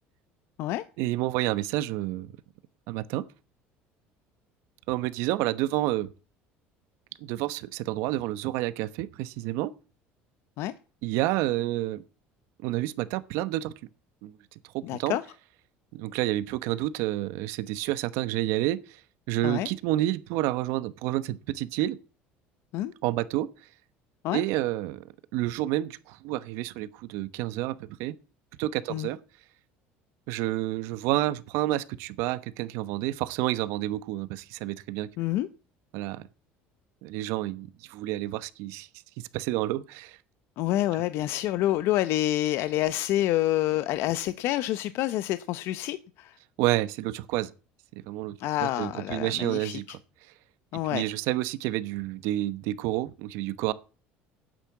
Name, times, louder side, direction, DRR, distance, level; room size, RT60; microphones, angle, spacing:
voice 1, 1.0-2.3 2.9-3.2 4.9-6.1 7.2-9.7 11.0-12.0 12.6-13.7 14.2-14.3 14.7-15.2 15.9-19.0 19.3-22.0 23.0-23.5 24.3-25.0 25.3-28.2 28.6-29.2 30.3-35.1 35.9-36.2 37.0-38.9 39.2-40.2 46.6-47.5 48.1-50.0 50.9-53.7, right 16 dB, 75° right, 1.0 m, -29 dB
voice 2, 14.8-15.2 19.4-19.7 22.7-22.9 24.2-24.4 28.9-29.1 35.2-35.5 40.6-46.4 48.4-49.8 50.7-51.0, left 14 dB, 65° left, 0.7 m, -27 dB
9.1 x 8.4 x 9.3 m
cardioid pair, 125°, 5 cm